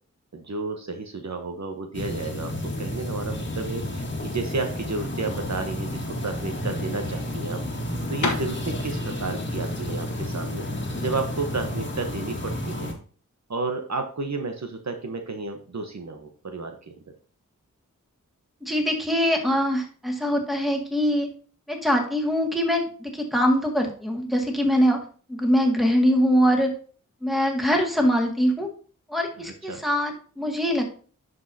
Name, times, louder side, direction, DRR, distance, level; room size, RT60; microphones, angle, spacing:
voice 1, 0.3-7.6 8.1-10.7 11.0-12.9 13.5-17.0 29.4-29.8, right 3 dB, 55° right, 5 dB, 1.0 m, -32 dB
sound 1, 1.9-12.9, left 1 dB, 35° left, 1.6 m, -31 dB
sound 2, 8.1-12.0, left 3 dB, 65° left, 1.1 m, -34 dB
voice 2, 18.6-21.3 21.7-25.0 25.3-26.7 27.2-28.7 29.1-30.9, equal, ahead, 2 dB, 2.0 m, -23 dB
11.0 x 5.3 x 2.8 m, 0.41 s
cardioid pair, 45°, 32 cm